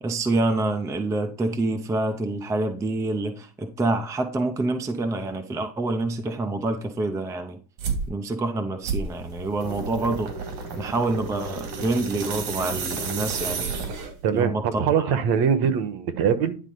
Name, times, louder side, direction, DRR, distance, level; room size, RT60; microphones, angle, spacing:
voice 1, 0.0-7.6 8.1-10.3 10.7-13.8 14.3-15.2, right 2 dB, 5° right, 0.4 m, -27 dB
sound 1, 7.8-8.1 8.8-14.3, right 4 dB, 80° right, 2.5 m, -31 dB
voice 2, 14.2-16.6, right 7 dB, 50° right, 1.2 m, -22 dB
10.0 x 3.7 x 5.3 m
cardioid pair, 140°, 47 cm